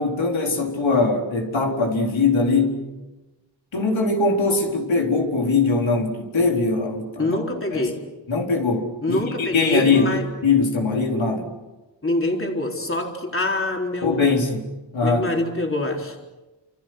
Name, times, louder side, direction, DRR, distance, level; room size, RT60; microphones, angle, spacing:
voice 1, 0.0-2.8 3.7-7.4 7.7-7.9 8.3-11.5 14.0-14.7 14.9-15.3, left 3 dB, 85° left, 1 dB, 4.3 m, -21 dB
voice 2, 7.2-8.0 9.0-10.3 12.0-14.3 15.0-16.2, left 2 dB, 25° left, 1 dB, 4.0 m, -25 dB
29.0 x 28.0 x 6.4 m, 1.1 s
wide cardioid pair, 135°, 46 cm